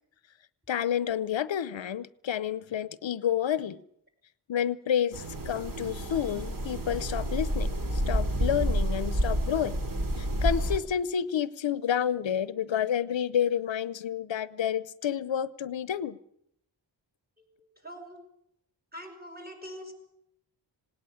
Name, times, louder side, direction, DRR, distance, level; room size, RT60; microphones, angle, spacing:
voice 1, 0.7-3.8 4.5-9.8 10.2-16.2, left 9 dB, 90° left, 17 dB, 0.7 m, -30 dB
sound 1, 5.1-10.8, right 1 dB, 50° right, 2.4 m, -29 dB
voice 2, 17.8-18.2 18.9-19.9, equal, 20° right, 4 dB, 5.7 m, -43 dB
18.5 x 18.0 x 8.5 m, 0.75 s
wide cardioid pair, 90°, 44 cm